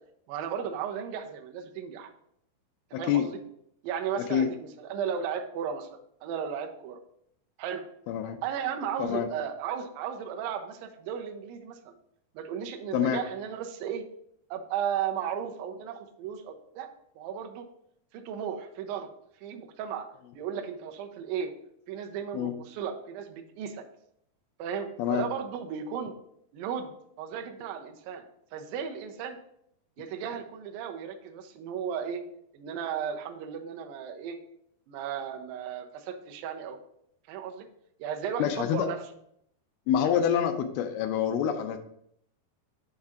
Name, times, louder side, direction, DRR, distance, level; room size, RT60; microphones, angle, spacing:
voice 1, 0.3-2.1 3.0-3.4 3.8-5.9 6.2-7.0 7.6-7.8 8.4-11.9 12.4-14.0 14.5-16.9 17.2-17.7 18.1-19.1 19.4-20.0 20.3-21.5 21.9-23.8 24.6-26.1 26.5-26.9 27.2-28.2 28.5-29.4 30.0-32.2 32.5-34.4 34.9-36.8 37.3-37.7 38.0-39.0, right 8 dB, 80° right, 3 dB, 2.3 m, -35 dB
voice 2, 2.9-3.2 4.2-4.5 8.1-8.4 9.0-9.3 12.9-13.2 22.3-22.5 25.0-25.3 38.4-38.9 39.9-41.8, left 9 dB, 85° left, 7 dB, 2.5 m, -26 dB
6.4 x 3.6 x 5.6 m, 0.70 s
omnidirectional pair, 4.4 m